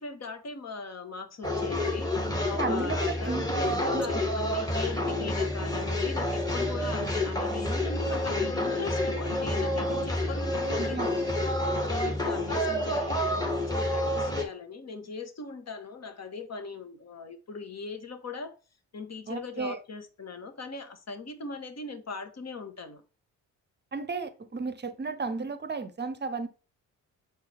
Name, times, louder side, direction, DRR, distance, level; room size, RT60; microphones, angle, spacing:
voice 1, 0.0-11.2 11.7-18.6 18.9-23.0, left 4 dB, 35° left, 7 dB, 1.2 m, -40 dB
sound 1, 1.4-14.5, left 1 dB, 10° left, 1.7 m, -29 dB
voice 2, 2.5-4.1 10.7-11.1 19.3-19.8 23.9-26.5, right 4 dB, 25° right, 12 dB, 0.9 m, -34 dB
6.4 x 4.5 x 3.4 m, 0.33 s
hypercardioid pair, 45°, 44 cm